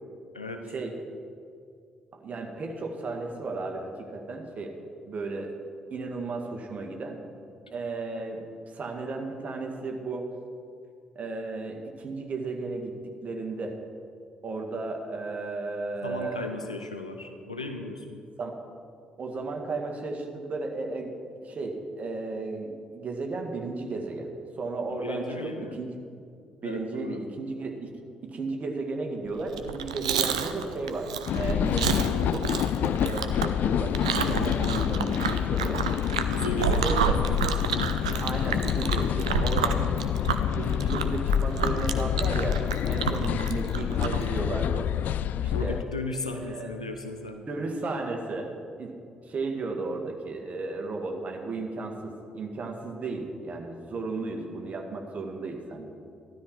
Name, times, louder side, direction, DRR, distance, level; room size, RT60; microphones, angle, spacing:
voice 1, 2.1-4.8 5.0-5.6 5.9-7.2 7.7-10.3 11.2-13.0 13.2-13.8 14.4-16.6 18.4-18.6 19.2-21.1 21.4-24.3 24.6-25.9 26.6-27.9 28.2-35.8 36.7-37.2 38.2-39.9 40.5-44.9 45.4-45.8 46.4-46.7 47.5-49.0 49.2-55.9, right 3 dB, 45° right, 3 dB, 2.0 m, -34 dB
voice 2, 16.0-18.2 24.9-25.8 26.6-27.2 36.2-37.5 43.1-43.4 45.5-47.5, left 2 dB, 90° left, 4 dB, 0.8 m, -36 dB
Chewing mastication, 29.5-44.3, right 7 dB, 80° right, 0.6 m, -30 dB
sound 1, 31.3-45.8, left 10 dB, 55° left, 0.3 m, -27 dB
15.0 x 12.5 x 4.7 m, 2.5 s
figure-of-eight pair, 45°, 3 cm